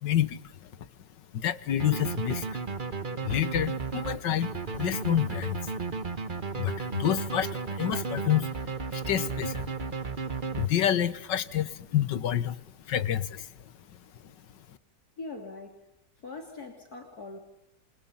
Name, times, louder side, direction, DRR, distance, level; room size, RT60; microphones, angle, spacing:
voice 1, 0.0-0.7 1.3-2.6 3.2-5.7 6.5-8.5 8.9-9.8 10.6-12.6 12.9-13.5, left 10 dB, 85° left, 16 dB, 1.8 m, -28 dB
sound 1, 1.8-11.1, right 4 dB, 30° right, 1.2 m, -34 dB
voice 2, 15.2-15.8 16.2-17.4, left 3 dB, 60° left, 4 dB, 3.5 m, -41 dB
28.5 x 27.5 x 5.7 m, 0.83 s
omnidirectional pair, 1.9 m